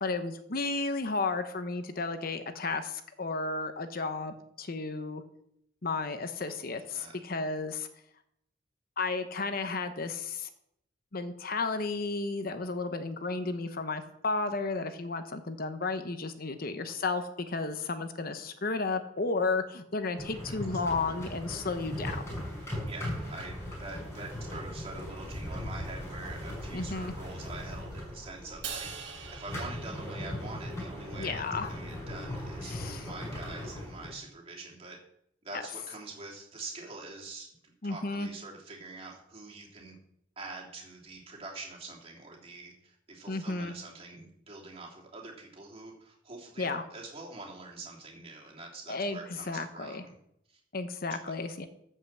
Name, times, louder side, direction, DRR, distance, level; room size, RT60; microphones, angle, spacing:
voice 1, 0.0-5.2 5.8-7.9 9.0-10.5 11.1-22.2 26.7-27.1 31.2-31.7 32.7-33.1 35.5-35.6 37.8-38.3 43.3-43.7 46.6-46.9 48.9-49.2 49.5-50.0 50.7-51.7, left 3 dB, 50° left, 9 dB, 0.9 m, -33 dB
sound 1, 20.2-34.1, left 1 dB, 15° left, 6.0 m, -39 dB
voice 2, 22.7-35.0 35.4-39.9 40.4-50.2 50.5-50.6, right 3 dB, 30° right, -2 dB, 3.0 m, -45 dB
Crash cymbal, 28.6-31.0, right 7 dB, 80° right, 1.9 m, -43 dB
13.5 x 5.6 x 7.5 m, 0.75 s
head